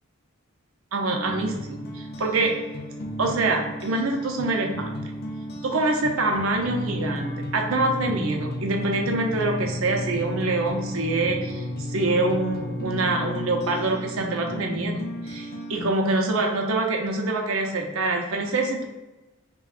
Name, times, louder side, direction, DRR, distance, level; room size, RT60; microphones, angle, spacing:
voice 1, 0.9-2.6 3.2-4.9 5.6-18.8, right 2 dB, 75° right, 2 dB, 0.7 m, -25 dB
sound 1, 1.1-15.9, left 1 dB, 45° left, 0.5 m, -33 dB
5.5 x 2.3 x 2.4 m, 1.1 s
head